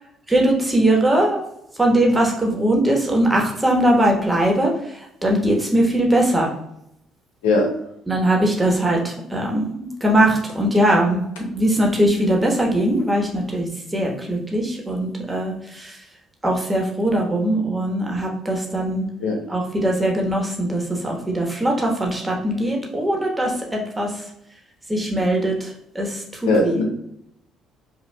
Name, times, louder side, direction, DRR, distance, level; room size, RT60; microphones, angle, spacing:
voice 1, 0.3-1.4 1.8-6.5 8.1-16.0 16.4-19.0 19.5-24.2 24.9-26.8, right 1 dB, 15° right, 0 dB, 1.1 m, -21 dB
voice 2, 26.4-26.8, left 2 dB, 85° left, 0 dB, 0.7 m, -18 dB
5.1 x 2.2 x 2.2 m, 0.76 s
hypercardioid pair, 60°, 0 cm